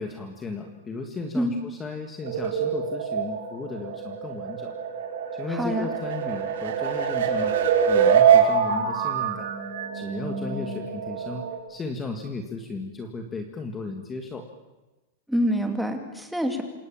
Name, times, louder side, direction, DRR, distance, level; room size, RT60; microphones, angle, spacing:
voice 1, 0.0-4.8 5.3-7.5 7.9-9.5 9.9-14.5, left 3 dB, 15° left, 4 dB, 1.9 m, -35 dB
sound 1, 2.2-11.6, right 7 dB, 70° right, 5.8 m, -24 dB
voice 2, 5.5-5.9 15.3-16.6, equal, ahead, 4 dB, 2.7 m, -26 dB
27.5 x 26.5 x 7.4 m, 1.1 s
supercardioid pair, 165°, 0 cm